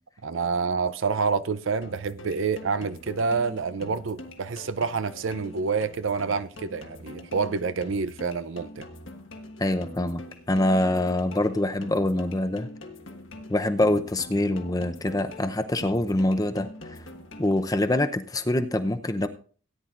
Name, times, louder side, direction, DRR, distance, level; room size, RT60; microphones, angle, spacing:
voice 1, 0.2-8.9, right 5 dB, 75° right, 0.6 m, -28 dB
sound 1, 1.8-17.8, left 1 dB, 70° left, 1.4 m, -44 dB
voice 2, 9.6-12.7 13.5-17.0 17.4-19.3, left 1 dB, 20° left, 0.7 m, -25 dB
17.5 x 9.9 x 2.5 m
head